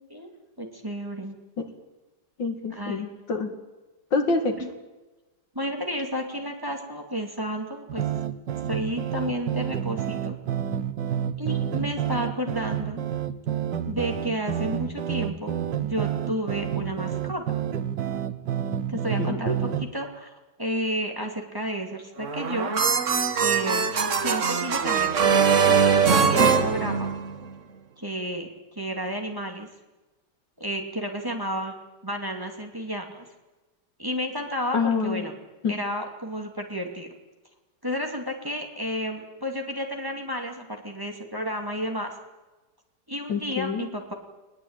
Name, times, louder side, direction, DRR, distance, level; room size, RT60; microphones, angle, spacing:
voice 1, 0.6-1.4 2.7-3.2 4.6-4.7 5.5-8.0 8.7-10.4 11.4-13.0 13.9-17.4 18.9-20.3 20.6-22.7 23.4-23.8 24.2-27.1 28.0-29.7 30.6-31.7 32.0-33.3 34.0-35.3 35.7-37.1 37.8-42.2 43.1-44.1, equal, 10° right, 2 dB, 2.6 m, -31 dB
voice 2, 2.4-3.5 4.1-4.5 19.2-19.5 34.7-35.3 35.6-35.7 43.3-43.9, left 4 dB, 85° left, 6 dB, 2.9 m, -26 dB
sound 1, 7.9-19.9, right 9 dB, 80° right, 1.7 m, -29 dB
sound 2, 22.2-27.5, right 6 dB, 45° right, 1.6 m, -22 dB
20.0 x 20.0 x 9.0 m, 1.1 s
omnidirectional pair, 1.9 m